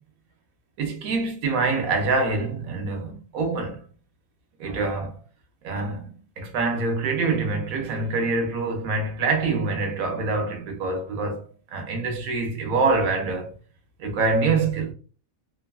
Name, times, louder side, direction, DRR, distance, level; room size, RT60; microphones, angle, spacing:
voice 1, 0.8-3.8 4.6-5.2 5.6-13.5 14.0-14.9, right 3 dB, 90° right, 1.2 m, -25 dB
2.9 x 2.3 x 2.3 m
omnidirectional pair, 1.4 m